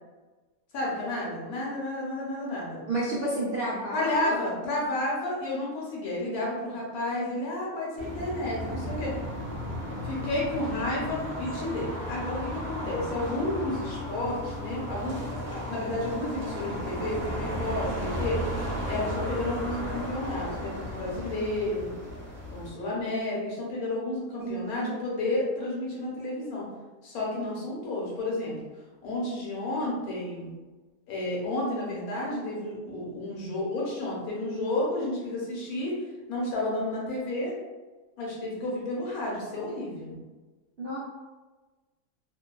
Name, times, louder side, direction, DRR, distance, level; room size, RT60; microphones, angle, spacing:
voice 1, 0.7-2.8 3.9-9.2 10.0-15.2 15.5-18.4 18.9-22.0 22.5-26.7 27.0-28.5 29.0-30.5 31.1-36.0 36.3-37.5 38.2-40.2, left 1 dB, 70° left, -4 dB, 1.2 m, -31 dB
voice 2, 2.9-4.4 24.4-24.9 40.8-41.0, right 1 dB, 80° right, -7 dB, 0.4 m, -31 dB
sound 1, 8.0-22.7, equal, 35° right, 0.9 m, -34 dB
3.0 x 2.1 x 2.2 m, 1.2 s
omnidirectional pair, 1.6 m